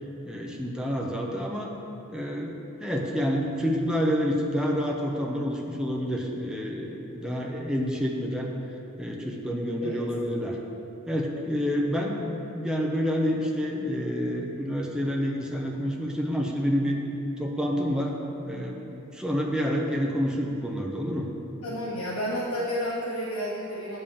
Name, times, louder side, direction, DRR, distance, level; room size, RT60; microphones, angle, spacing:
voice 1, 0.3-1.7 2.1-8.5 9.0-10.6 11.1-17.0 17.4-18.1 18.5-18.8 19.1-21.3, equal, 5° right, 0 dB, 0.8 m, -28 dB
voice 2, 21.6-24.0, equal, 90° left, -7 dB, 1.3 m, -31 dB
8.9 x 5.4 x 7.0 m, 3.0 s
head